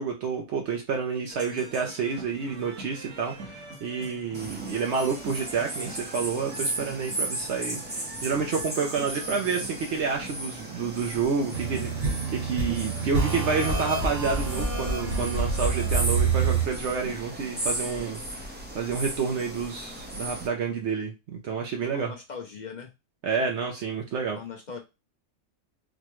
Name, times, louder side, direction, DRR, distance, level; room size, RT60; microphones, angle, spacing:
voice 1, 0.0-22.1 23.2-24.4, right 5 dB, 70° right, 2 dB, 0.9 m, -29 dB
sound 1, 1.3-18.1, right 4 dB, 85° right, 1.5 m, -45 dB
sound 2, 4.3-20.5, right 1 dB, 10° right, 0.5 m, -35 dB
sound 3, 11.5-16.7, right 5 dB, 45° right, 1.3 m, -27 dB
voice 2, 21.9-22.9 24.3-24.8, left 6 dB, 60° left, 3 dB, 0.4 m, -40 dB
4.1 x 2.2 x 2.9 m, 0.26 s
omnidirectional pair, 1.3 m